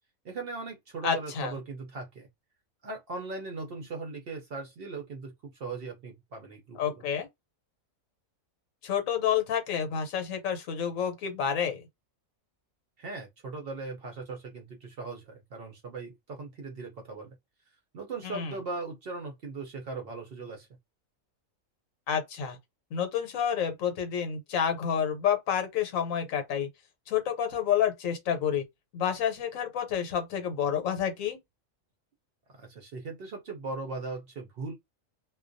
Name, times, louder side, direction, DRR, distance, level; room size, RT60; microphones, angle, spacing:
voice 1, 0.2-2.3 2.8-6.9 13.0-17.3 17.9-20.7 32.5-34.8, right 3 dB, 60° right, 0.6 m, -39 dB
voice 2, 1.0-1.5 6.8-7.3 8.8-11.8 18.2-18.6 22.1-22.6 22.9-26.7 27.1-28.6 28.9-31.4, left 8 dB, 75° left, 1.1 m, -29 dB
2.3 x 2.2 x 2.5 m
omnidirectional pair, 1.4 m